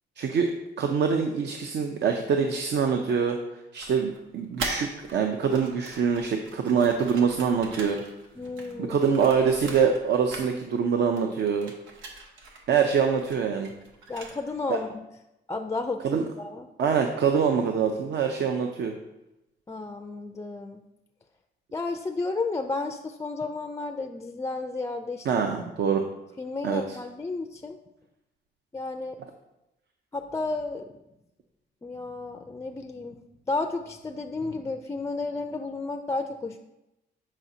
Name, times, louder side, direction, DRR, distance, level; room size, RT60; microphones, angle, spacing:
voice 1, 0.2-0.5 0.8-3.4 3.7-8.0 8.8-11.7 12.7-13.7 14.7-14.8 16.0-16.2 16.8-18.9 25.3-26.0 26.6-26.8, right 6 dB, 60° right, 4 dB, 0.6 m, -24 dB
sound 1, 3.8-5.1 5.4-10.0 10.3-10.9 11.2-14.6, right 3 dB, 85° right, 1.0 m, -41 dB
voice 2, 8.4-9.0 14.1-15.0 15.5-16.7 19.7-20.8 21.7-25.3 26.4-27.8 28.7-29.2 30.1-30.9 31.8-33.2 33.5-36.6, left 3 dB, 15° left, 6 dB, 0.4 m, -32 dB
7.3 x 4.9 x 2.7 m, 0.93 s
cardioid pair, 90°, 20 cm